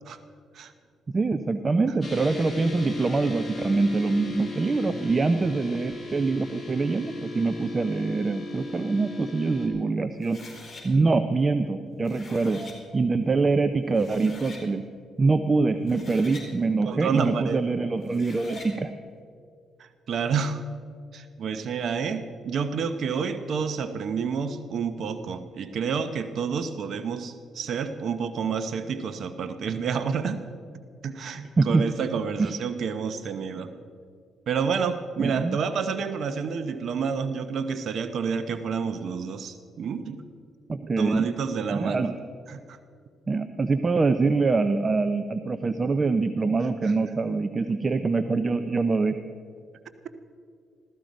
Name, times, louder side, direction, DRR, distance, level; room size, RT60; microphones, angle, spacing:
voice 1, 1.1-10.4 10.8-12.6 12.9-14.8 15.2-18.9 31.6-31.9 32.4-32.5 35.2-35.6 40.7-41.4 41.7-42.1 43.3-49.1, right 3 dB, 30° right, 10 dB, 0.6 m, -24 dB
sound 1, 2.0-9.7, left 2 dB, 10° left, 4.2 m, -36 dB
sound 2, 10.2-10.8 11.9-12.8 13.6-13.7 13.9-14.6 15.7-16.5 18.0-18.7, left 1 dB, 30° left, 4.5 m, -44 dB
voice 2, 16.8-17.6 19.8-20.6 21.1-30.4 31.0-33.7 34.5-40.2 41.0-42.1 42.5-42.8 46.8-46.9, right 6 dB, 65° right, 10 dB, 0.8 m, -29 dB
15.5 x 14.0 x 5.2 m, 2.2 s
cardioid pair, 90°, 0 cm